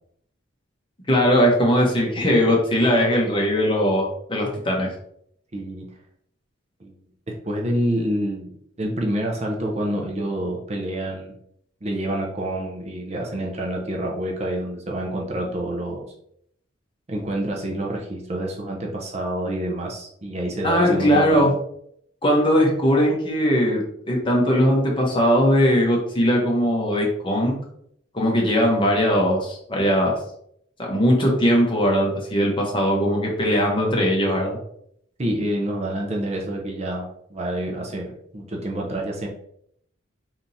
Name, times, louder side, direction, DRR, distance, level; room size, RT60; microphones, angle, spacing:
voice 1, 1.1-4.9 20.6-21.5 22.2-27.5 28.1-30.2 30.8-34.6, equal, 25° left, -1 dB, 1.0 m, -20 dB
voice 2, 5.5-5.8 6.8-7.0 7.3-11.3 11.8-16.0 17.1-21.5 35.2-39.3, right 1 dB, 35° right, 0 dB, 0.6 m, -27 dB
3.5 x 2.8 x 4.0 m, 0.69 s
head